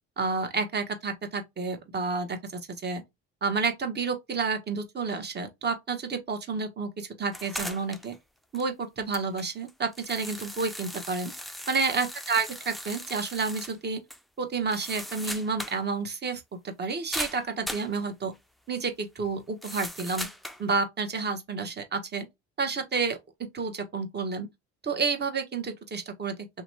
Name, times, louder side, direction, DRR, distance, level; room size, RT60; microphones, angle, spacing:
voice 1, 0.2-3.0 3.4-8.1 8.5-11.3 11.7-14.0 14.4-18.3 18.7-20.3 20.6-22.2 22.6-23.2 23.5-24.5 24.8-26.3, right 4 dB, 35° right, 0.9 m, -30 dB
sound 1, 7.3-8.2 8.5-8.6 9.1-13.8 14.1-14.2 14.5-15.8 16.1-16.2 17.1-17.9 19.6-20.6, equal, ahead, 0.3 m, -38 dB
2.8 x 2.2 x 3.1 m
supercardioid pair, 65°, 30 cm